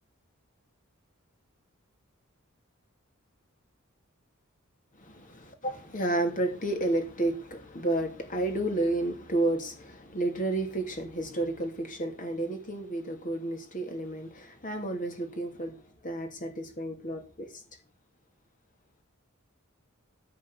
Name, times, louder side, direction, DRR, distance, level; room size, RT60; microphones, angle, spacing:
voice 1, 5.0-17.5, right 2 dB, 40° left, 3.0 m, -31 dB
14.0 x 5.1 x 8.3 m
head